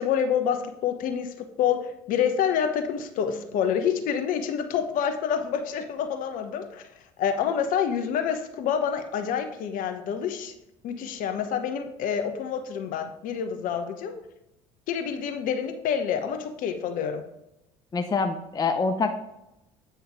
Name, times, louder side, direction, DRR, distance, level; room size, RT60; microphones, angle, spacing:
voice 1, 0.0-6.8 7.2-10.5 10.8-14.2 14.9-17.2, left 8 dB, 55° left, 7 dB, 1.0 m, -27 dB
voice 2, 17.9-19.1, left 4 dB, 25° left, 7 dB, 0.7 m, -25 dB
8.7 x 5.6 x 3.5 m, 0.87 s
figure-of-eight pair, 60°, 17 cm